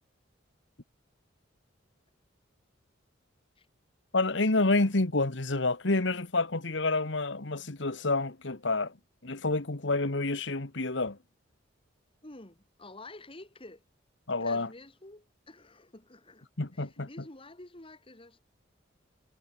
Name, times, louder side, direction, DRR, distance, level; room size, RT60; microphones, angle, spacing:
voice 1, 4.1-8.9 9.2-11.2 14.3-14.7 16.6-17.1, left 2 dB, 65° left, 1.7 m, -28 dB
voice 2, 12.2-13.8 14.3-16.5 16.7-18.4, left 2 dB, 30° left, 2.7 m, -50 dB
head